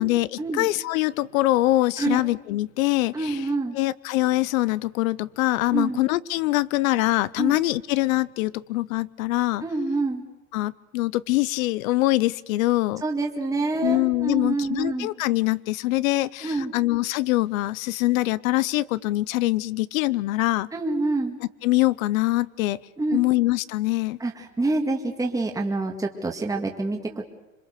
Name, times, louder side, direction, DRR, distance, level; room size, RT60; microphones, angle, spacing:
voice 1, 0.0-3.5 3.7-9.6 10.5-13.0 13.8-20.7 21.6-22.8 23.1-24.2, left 18 dB, 75° left, 20 dB, 0.8 m, -24 dB
voice 2, 3.1-3.8 5.7-6.0 7.4-7.6 9.6-10.2 13.0-15.1 16.4-16.7 20.7-21.4 23.0-23.2 24.2-27.2, right 2 dB, 10° right, 1 dB, 1.9 m, -26 dB
27.0 x 22.0 x 6.8 m, 1.0 s
supercardioid pair, 130°, 41 cm